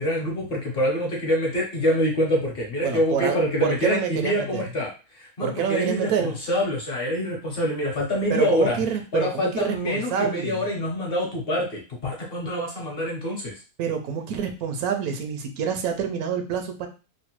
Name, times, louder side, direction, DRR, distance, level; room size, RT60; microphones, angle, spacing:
voice 1, 0.0-8.8 9.1-13.5, equal, 50° left, -1 dB, 0.9 m, -25 dB
voice 2, 2.8-4.6 5.4-6.3 8.3-10.6 13.8-16.9, right 7 dB, 90° right, 6 dB, 1.1 m, -27 dB
3.1 x 2.1 x 2.9 m, 0.32 s
omnidirectional pair, 1.5 m